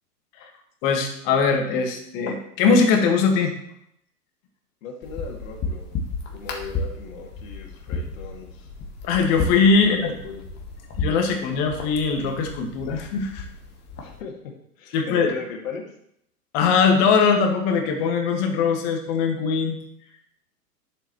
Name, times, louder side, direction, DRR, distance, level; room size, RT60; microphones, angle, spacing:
voice 1, 0.8-3.5 9.1-10.1 11.0-13.5 14.9-15.3 16.5-19.8, left 5 dB, 40° left, 4 dB, 1.7 m, -21 dB
voice 2, 4.8-5.9 6.3-8.7 9.8-10.0 10.2-10.5 11.3-11.4 14.0-14.3 14.8-15.8, left 5 dB, 55° left, 1 dB, 2.2 m, -37 dB
sound 1, 5.0-14.2, left 3 dB, 20° left, 1.4 m, -33 dB
11.0 x 7.1 x 3.1 m, 0.74 s
figure-of-eight pair, 110°, 47 cm